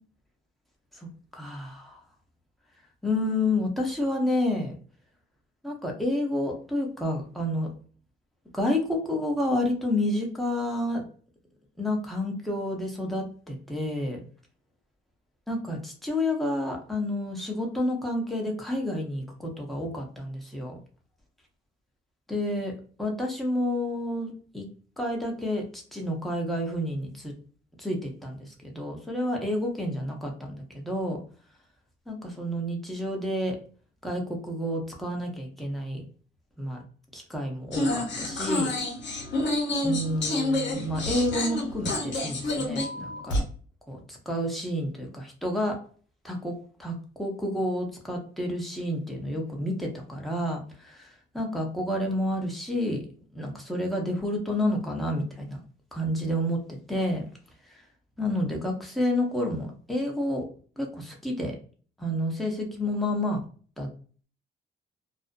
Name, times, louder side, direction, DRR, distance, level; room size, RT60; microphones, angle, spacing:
voice 1, 1.3-2.0 3.0-4.8 5.6-7.7 8.5-11.0 11.8-14.2 15.5-20.8 22.3-22.7 23.0-24.7 25.0-27.3 27.8-31.2 32.1-33.6 34.0-36.0 36.6-36.8 37.1-38.7 39.8-43.4 43.9-45.8 46.2-53.0 53.3-55.6 55.9-57.2 58.2-60.5 60.8-61.5 62.0-63.4 63.8-63.9, left 1 dB, ahead, -1 dB, 0.8 m, -30 dB
sound 1, 37.7-43.4, left 2 dB, 65° left, 0.9 m, -28 dB
2.5 x 2.0 x 2.4 m, 0.42 s
cardioid pair, 90°, 20 cm